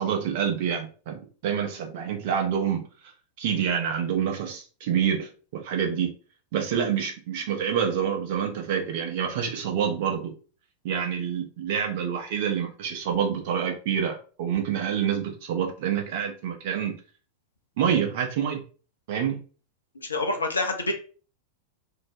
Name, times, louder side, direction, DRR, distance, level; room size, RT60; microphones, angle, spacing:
voice 1, 0.0-2.8 3.4-6.1 6.5-10.3 10.8-17.0 17.8-18.6 19.1-19.4, right 8 dB, 50° right, 3 dB, 0.6 m, -27 dB
voice 2, 20.0-20.9, left 2 dB, 75° left, 4 dB, 0.5 m, -27 dB
2.6 x 2.0 x 2.9 m, 0.38 s
figure-of-eight pair, 90°, 0 cm